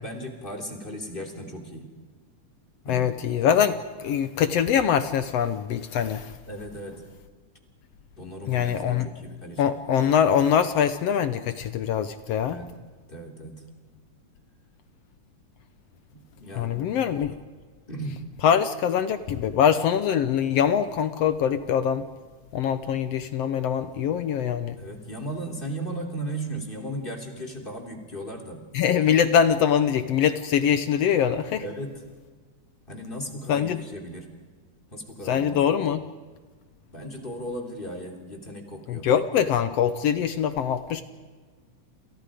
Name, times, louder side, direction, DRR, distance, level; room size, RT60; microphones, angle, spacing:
voice 1, 0.0-1.9 2.8-3.1 6.5-7.0 8.2-9.8 12.4-12.7 13.1-13.6 16.1-16.8 17.9-18.2 22.8-23.0 24.8-28.7 31.6-32.0 32.9-34.3 34.9-35.7 36.9-39.1, right 1 dB, 15° left, 3 dB, 3.1 m, -36 dB
voice 2, 2.9-6.3 8.5-9.1 9.6-12.6 16.6-17.4 18.4-22.1 22.5-24.8 28.7-31.6 33.5-33.8 35.3-36.0 38.9-41.0, left 8 dB, 65° left, 11 dB, 1.7 m, -23 dB
29.0 x 28.0 x 5.1 m, 1.4 s
omnidirectional pair, 3.5 m